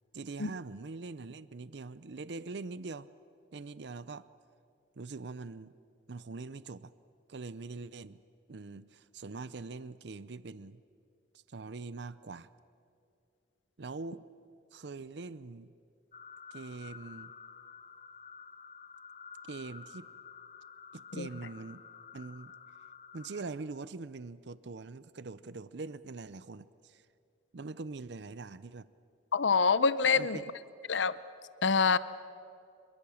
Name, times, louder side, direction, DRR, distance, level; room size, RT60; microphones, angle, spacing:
voice 1, 0.1-3.1 3.5-4.3 5.0-5.7 6.1-6.9 7.3-8.2 8.5-10.8 11.5-12.5 13.8-14.2 14.7-15.7 16.5-17.3 19.5-20.1 20.9-21.8 22.1-22.5 23.1-27.0 27.5-28.9 30.1-30.4, right 3 dB, 65° right, 16 dB, 0.6 m, -43 dB
sound 1, 16.1-23.4, left 6 dB, 40° left, 0.8 m, -51 dB
voice 2, 29.3-30.4 30.9-31.2 31.6-32.0, left 5 dB, 75° left, 16 dB, 0.7 m, -26 dB
26.5 x 22.5 x 7.1 m, 2.5 s
head